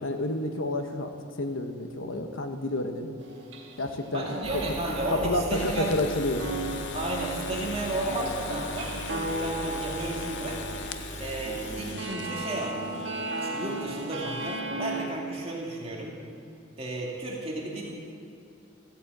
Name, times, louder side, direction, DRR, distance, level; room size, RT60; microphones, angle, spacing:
voice 1, 0.0-3.2 3.8-4.2 5.1-6.4, left 1 dB, 80° left, 5 dB, 1.1 m, -29 dB
sound 1, 3.2-3.9 4.2-15.1, right 1 dB, 65° right, 1.6 m, -36 dB
voice 2, 4.1-5.9 6.9-8.9 9.4-10.6 11.2-12.9 13.4-16.2 16.8-18.0, right 2 dB, 30° right, -2 dB, 2.0 m, -33 dB
Engine, 4.4-11.9, right 1 dB, 45° right, 3.8 m, -40 dB
sound 2, 5.5-14.6, left 6 dB, 60° left, 0.6 m, -41 dB
15.0 x 8.5 x 7.9 m, 2.5 s
head